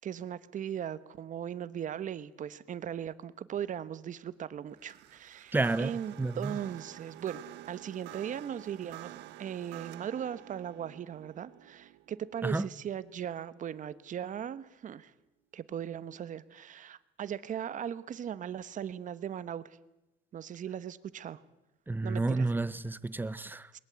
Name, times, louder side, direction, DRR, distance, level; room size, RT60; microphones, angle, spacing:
voice 1, 0.0-7.4 7.7-9.1 9.4-15.1 15.5-19.8 20.3-21.4 22.0-22.5 23.7-23.8, right 9 dB, 50° right, 1.2 m, -38 dB
sound 1, 4.7-14.1, right 15 dB, 90° right, 1.2 m, -49 dB
voice 2, 5.5-5.9 6.2-6.5 12.4-12.7 21.9-23.7, right 3 dB, 10° right, 0.8 m, -30 dB
21.5 x 20.5 x 8.2 m
cardioid pair, 110°, 17 cm